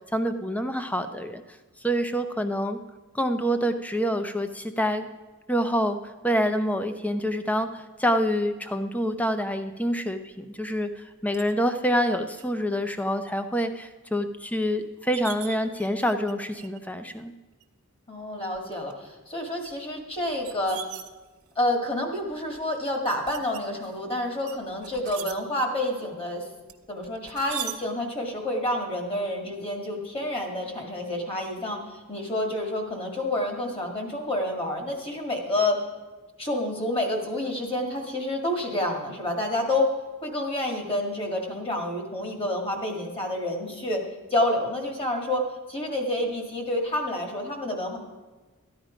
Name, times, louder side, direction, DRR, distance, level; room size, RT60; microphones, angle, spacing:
voice 1, 0.1-1.4 1.8-2.8 3.1-5.1 5.5-6.0 6.2-17.3, equal, 5° left, 9 dB, 0.6 m, -26 dB
sound 1, 11.3-11.5 12.4-12.5 12.9-13.3 13.7-13.8 14.6-14.7 15.0-16.3 16.6-16.9 17.6-17.7 18.5-18.9 19.6-21.6 22.2-22.6 23.3-24.0 24.5-25.3 26.7-27.8, right 11 dB, 85° right, 0.9 m, -40 dB
voice 2, 18.1-20.8 21.6-26.5 26.9-35.8 36.4-39.9 40.2-44.0 44.3-48.0, left 1 dB, 25° left, 2 dB, 1.9 m, -28 dB
13.5 x 10.5 x 5.1 m, 1.3 s
head